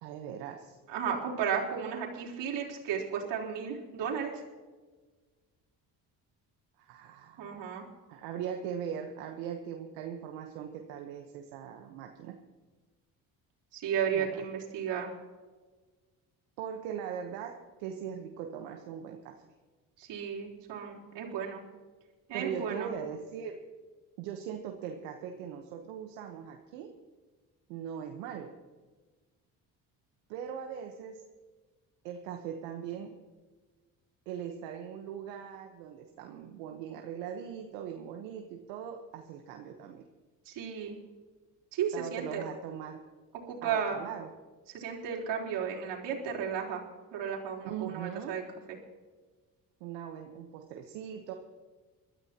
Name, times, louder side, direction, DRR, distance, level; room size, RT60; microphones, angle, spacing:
voice 1, 0.0-0.8 6.8-7.6 8.1-12.4 14.1-14.4 16.6-19.5 22.3-23.6 24.2-26.9 27.7-28.5 30.3-31.2 32.0-33.1 34.3-40.1 41.9-43.0 43.6-44.3 47.6-48.4 49.8-51.3, right 8 dB, 90° right, 4 dB, 1.2 m, -40 dB
voice 2, 0.9-4.4 7.4-7.8 13.7-15.1 20.0-21.6 22.3-22.9 40.5-41.0 41.7-42.4 43.5-44.0 44.7-46.8 47.1-48.4, right 7 dB, 70° right, -2 dB, 3.9 m, -34 dB
22.5 x 13.5 x 2.9 m, 1.4 s
supercardioid pair, 60°, 43 cm